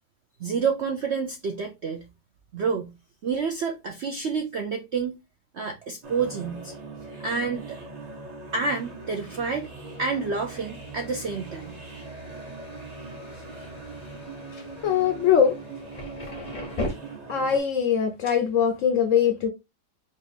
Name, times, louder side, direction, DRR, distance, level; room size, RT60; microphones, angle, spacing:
voice 1, 0.4-2.0 2.5-2.9 3.2-5.2 5.5-6.7 7.2-7.8 8.5-9.7 10.0-11.7, right 5 dB, 70° right, 0.6 m, -28 dB
sound 1, 6.0-17.6, right 3 dB, 35° right, 0.8 m, -41 dB
Thunder, 9.0-16.9, left 2 dB, 35° left, 0.7 m, -41 dB
voice 2, 14.5-15.6 17.3-19.5, left 8 dB, 65° left, 0.8 m, -22 dB
4.4 x 2.4 x 3.4 m
omnidirectional pair, 1.8 m